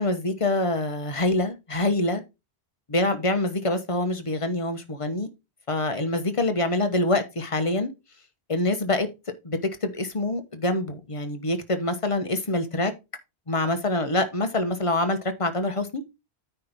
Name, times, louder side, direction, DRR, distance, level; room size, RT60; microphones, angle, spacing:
voice 1, 0.0-2.2 2.9-5.3 5.7-7.9 8.5-9.1 9.4-12.9 13.5-16.0, left 2 dB, 30° left, 1.2 m, -25 dB
9.4 x 3.4 x 5.9 m
omnidirectional pair, 1.1 m